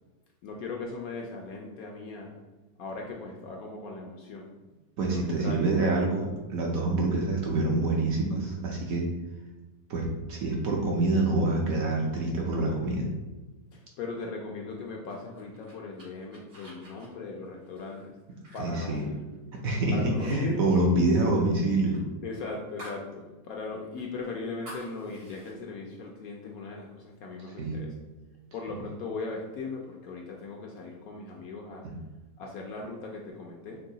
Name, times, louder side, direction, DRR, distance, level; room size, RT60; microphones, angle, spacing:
voice 1, 0.4-2.3 2.8-4.5 5.1-5.7 13.7-18.1 18.5-19.1 19.9-20.6 22.2-27.9 28.5-31.9 32.4-33.8, left 3 dB, 70° left, 0 dB, 0.9 m, -38 dB
voice 2, 5.0-9.1 9.9-13.1 18.6-19.0 19.6-22.0 27.6-27.8 31.8-31.9, right 2 dB, 65° right, -1 dB, 1.0 m, -26 dB
sound 1, 15.1-19.7 20.0-20.4 20.6-23.1 23.4-23.5 24.0-25.5, equal, 80° right, 2.4 m, -50 dB
4.6 x 2.2 x 3.8 m, 1.2 s
omnidirectional pair, 1.9 m